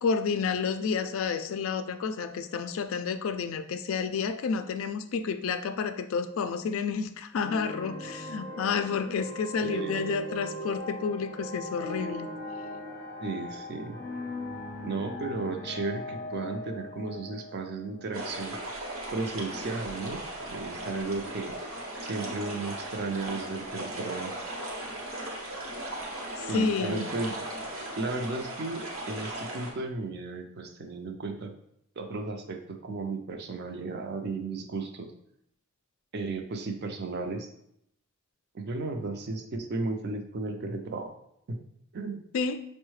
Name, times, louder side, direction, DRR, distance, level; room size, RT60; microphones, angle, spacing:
voice 1, 0.0-12.3 26.4-27.1 42.3-42.6, left 5 dB, 65° left, 9 dB, 0.3 m, -30 dB
sound 1, 7.4-18.6, equal, 15° left, 0.6 m, -39 dB
voice 2, 9.6-10.0 13.2-14.0 14.8-20.2 20.5-21.5 22.0-24.3 26.5-27.3 28.0-31.5 32.0-35.1 36.1-37.5 38.5-41.1 41.5-41.6 41.9-42.2, right 3 dB, 50° right, 5 dB, 0.5 m, -34 dB
sound 2, 18.1-29.7, right 1 dB, 75° right, 0.9 m, -37 dB
5.3 x 2.1 x 3.1 m, 0.74 s
head